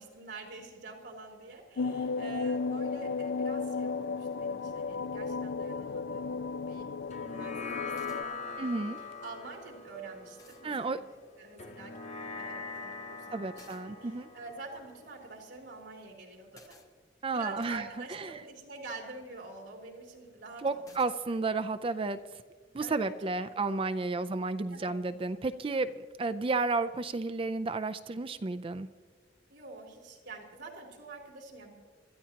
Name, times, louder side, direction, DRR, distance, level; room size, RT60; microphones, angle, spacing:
voice 1, 0.0-6.4 6.6-6.9 7.2-7.8 8.1-8.8 9.2-11.0 11.4-16.7 17.3-21.0 21.3-21.4 22.8-23.1 23.4-24.0 24.7-25.0 29.5-31.7, right 3 dB, 75° right, -1 dB, 3.1 m, -47 dB
sound 1, 1.8-8.2, left 4 dB, 75° left, 0.4 m, -34 dB
sound 2, 7.1-15.8, left 4 dB, 40° left, 0.8 m, -43 dB
sound 3, 8.0-8.3 9.8-9.9 10.4-10.6 13.6-13.9 16.5-16.9 17.6-17.8 20.9-21.1, left 3 dB, 20° left, 1.2 m, -56 dB
voice 2, 8.6-9.0 10.6-11.0 13.3-14.3 17.2-18.4 20.6-22.2 22.7-25.9 26.2-28.9, right 3 dB, 30° right, 12 dB, 0.4 m, -32 dB
25.5 x 13.5 x 2.9 m, 1.5 s
head